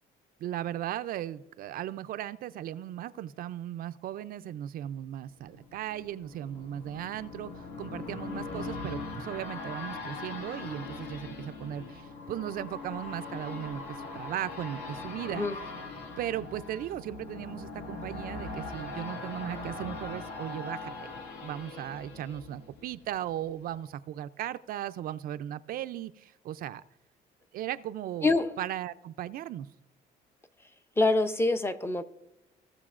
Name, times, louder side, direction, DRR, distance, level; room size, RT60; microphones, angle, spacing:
voice 1, 0.4-15.5 16.2-26.8 27.5-28.3 28.6-29.7, right 12 dB, 60° right, 13 dB, 0.4 m, -37 dB
sound 1, 5.4-23.2 23.6-23.7, left 3 dB, 80° left, 1.7 m, -41 dB
voice 2, 28.2-28.6 31.0-32.0, left 2 dB, 15° left, 10 dB, 0.6 m, -25 dB
16.5 x 6.7 x 2.4 m, 0.88 s
cardioid pair, 110°, 17 cm